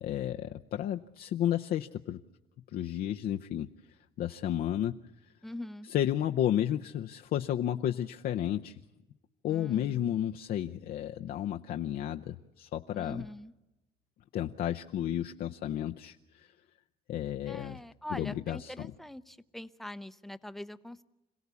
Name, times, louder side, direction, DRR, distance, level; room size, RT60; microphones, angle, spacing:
voice 1, 0.0-2.2 2.7-3.7 4.2-5.0 5.9-8.8 9.4-13.2 14.3-16.5 17.1-17.8 18.1-18.7, left 11 dB, 60° left, 4 dB, 0.7 m, -32 dB
voice 2, 5.4-5.9 9.5-10.2 12.9-13.5 17.5-21.0, left 1 dB, ahead, 13 dB, 0.8 m, -43 dB
26.5 x 16.5 x 8.3 m, 1.0 s
cardioid pair, 110°, 17 cm